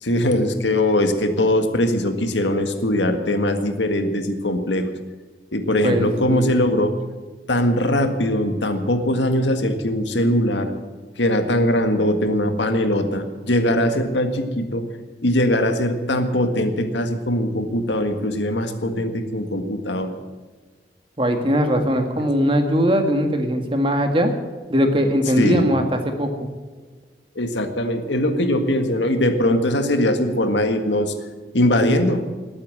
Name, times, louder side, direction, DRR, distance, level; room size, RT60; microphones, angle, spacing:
voice 1, 0.0-4.9 5.5-6.9 7.5-10.7 11.2-14.8 15.2-20.1 25.4-25.7 27.4-31.1 31.5-32.2, left 1 dB, 70° left, 7 dB, 1.8 m, -21 dB
voice 2, 5.8-6.5 21.2-24.3 24.7-26.5, equal, 30° right, 5 dB, 1.8 m, -20 dB
20.0 x 8.8 x 7.8 m, 1.4 s
head